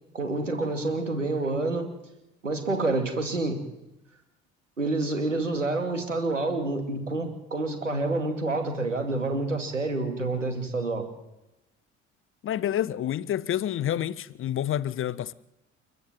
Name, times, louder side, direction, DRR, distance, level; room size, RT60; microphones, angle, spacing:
voice 1, 0.1-1.9 2.4-3.6 4.8-11.1, right 2 dB, 85° right, 2.6 m, -28 dB
voice 2, 12.4-15.3, left 11 dB, 35° left, 0.8 m, -28 dB
30.0 x 12.0 x 7.7 m
figure-of-eight pair, 55°, 37 cm